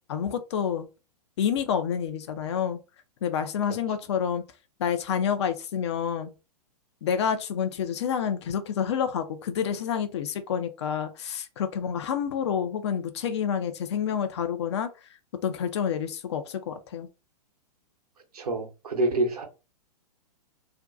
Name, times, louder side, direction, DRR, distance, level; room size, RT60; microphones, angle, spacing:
voice 1, 0.1-0.9 1.4-2.8 3.2-4.4 4.8-6.3 7.0-14.9 15.4-17.1, left 8 dB, 45° left, 0.4 m, -28 dB
voice 2, 18.3-19.4, right 2 dB, 70° right, 0.8 m, -27 dB
2.5 x 2.2 x 2.4 m
figure-of-eight pair, 110°, 20 cm